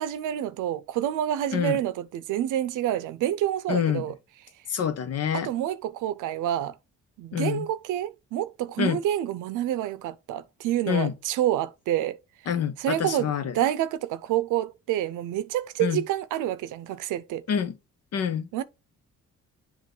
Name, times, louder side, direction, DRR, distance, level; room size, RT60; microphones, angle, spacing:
voice 1, 0.0-4.2 5.3-6.8 7.2-12.2 12.8-17.5 18.5-18.6, right 12 dB, 90° right, 0.7 m, -28 dB
voice 2, 3.7-4.0 4.7-5.5 7.3-7.7 8.8-9.0 10.9-11.1 12.5-13.5 15.8-16.0 17.5-17.7 18.1-18.5, left 8 dB, 55° left, 1.0 m, -26 dB
7.5 x 2.6 x 5.4 m
cardioid pair, 90°, 30 cm